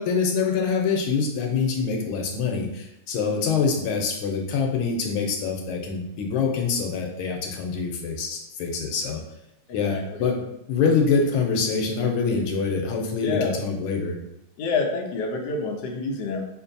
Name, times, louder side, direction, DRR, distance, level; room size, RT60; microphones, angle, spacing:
voice 1, 0.0-9.2 9.7-14.2, left 5 dB, 85° left, 1 dB, 1.5 m, -25 dB
voice 2, 9.7-10.2 13.2-13.6 14.6-16.5, left 3 dB, 65° left, 1 dB, 1.1 m, -28 dB
5.2 x 2.5 x 2.6 m, 0.84 s
omnidirectional pair, 2.3 m